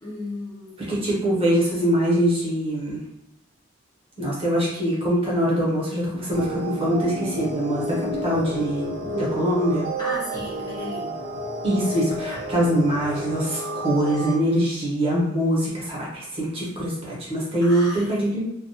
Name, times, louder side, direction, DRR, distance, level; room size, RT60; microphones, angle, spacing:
voice 1, 0.0-1.3 10.0-11.2 17.6-18.3, left 2 dB, 20° left, -6 dB, 0.6 m, -35 dB
voice 2, 0.9-3.0 4.2-9.9 11.6-18.4, equal, 30° right, -6 dB, 0.9 m, -23 dB
sound 1, 6.3-14.3, right 1 dB, 55° right, 0.7 m, -31 dB
2.3 x 2.2 x 2.7 m, 0.86 s
head